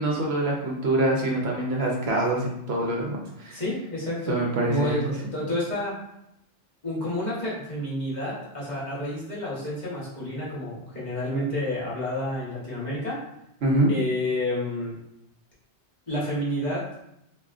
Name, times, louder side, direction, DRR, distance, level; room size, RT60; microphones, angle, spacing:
voice 1, 0.0-3.6 4.3-5.1 13.6-13.9, right 2 dB, 65° right, -1 dB, 0.8 m, -25 dB
voice 2, 3.5-5.9 6.8-13.2 13.9-15.0 16.1-16.8, left 1 dB, 40° left, -7 dB, 1.0 m, -30 dB
3.5 x 2.4 x 2.4 m, 0.80 s
omnidirectional pair, 1.2 m